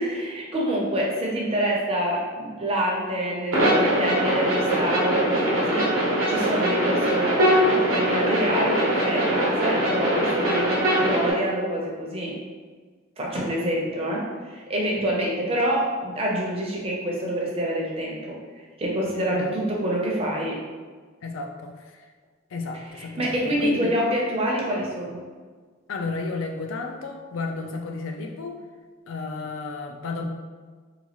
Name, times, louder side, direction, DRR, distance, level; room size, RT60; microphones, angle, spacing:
voice 1, 0.0-12.3 13.2-18.4 18.8-20.5 22.7-25.2, right 1 dB, 30° right, -3 dB, 0.6 m, -27 dB
sound 1, 3.5-11.3, right 1 dB, 80° right, 0.9 m, -22 dB
voice 2, 21.2-21.7 22.5-23.9 25.9-28.5 29.1-30.2, left 3 dB, 65° left, 4 dB, 0.4 m, -32 dB
2.8 x 2.3 x 2.9 m, 1.5 s
head